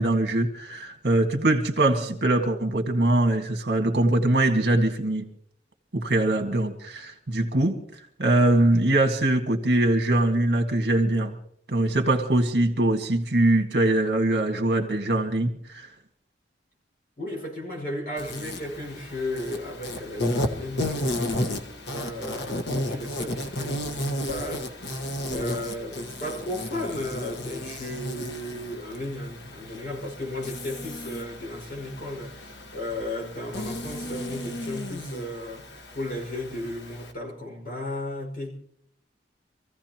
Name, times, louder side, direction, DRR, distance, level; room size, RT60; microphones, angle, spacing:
voice 1, 0.0-5.2 5.9-7.8 8.2-11.3 11.7-15.9, right 1 dB, 65° right, 1.8 m, -22 dB
voice 2, 17.2-21.3 21.9-35.7 35.9-38.5, left 1 dB, 55° left, 5.4 m, -35 dB
Insect, 18.2-37.1, left 1 dB, 80° left, 1.4 m, -33 dB
26.0 x 15.5 x 3.0 m
head